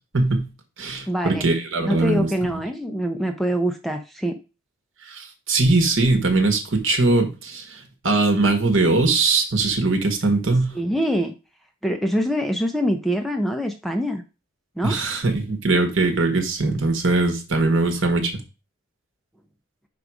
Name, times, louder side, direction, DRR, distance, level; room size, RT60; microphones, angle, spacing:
voice 1, 0.1-0.5 0.8-2.6 5.1-10.7 14.8-18.3, right 3 dB, 55° right, 5 dB, 1.4 m, -21 dB
voice 2, 1.1-1.5 1.8-4.4 10.7-11.3 11.8-14.2 14.8-15.0, equal, ahead, 5 dB, 0.5 m, -24 dB
5.3 x 4.7 x 4.8 m, 0.30 s
head